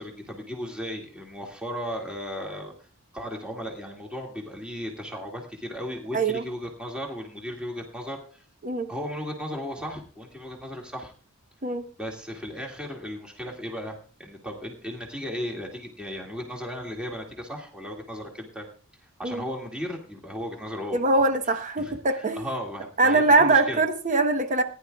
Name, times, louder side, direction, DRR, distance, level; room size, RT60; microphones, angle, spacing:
voice 1, 0.0-2.7 3.1-8.4 8.9-11.1 12.0-18.7 19.2-21.0 21.4-23.8, equal, 5° right, -1 dB, 2.1 m, -36 dB
voice 2, 20.9-22.4 23.0-24.6, right 3 dB, 35° right, 7 dB, 1.0 m, -22 dB
19.5 x 10.5 x 2.3 m, 0.38 s
head